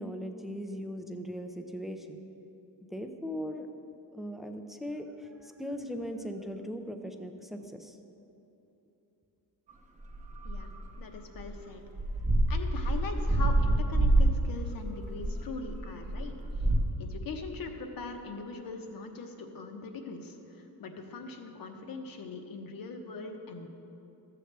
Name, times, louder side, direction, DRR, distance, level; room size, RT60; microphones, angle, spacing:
voice 1, 0.0-2.1 2.9-3.7 4.1-8.0, equal, ahead, 6 dB, 0.4 m, -39 dB
sound 1, 10.1-10.8 11.4-11.6 11.9-16.8, right 1 dB, 20° right, 0.8 m, -27 dB
voice 2, 11.0-11.8 12.5-16.7 17.0-23.7, left 4 dB, 55° left, 5 dB, 1.0 m, -41 dB
13.5 x 7.7 x 3.3 m, 3.0 s
cardioid pair, 145°, 41 cm